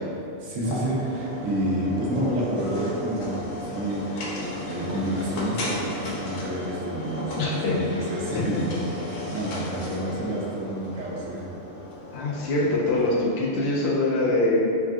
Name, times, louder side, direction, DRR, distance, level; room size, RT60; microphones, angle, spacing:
voice 1, 0.4-4.1 4.6-11.5, right 1 dB, 90° right, -4 dB, 1.1 m, -29 dB
sound 1, 0.6-13.3, left 1 dB, 85° left, 1.1 m, -34 dB
voice 2, 7.4-7.7 8.4-8.6 12.1-14.7, left 2 dB, 65° left, -4 dB, 0.8 m, -24 dB
3.5 x 3.5 x 2.4 m, 2.5 s
omnidirectional pair, 1.3 m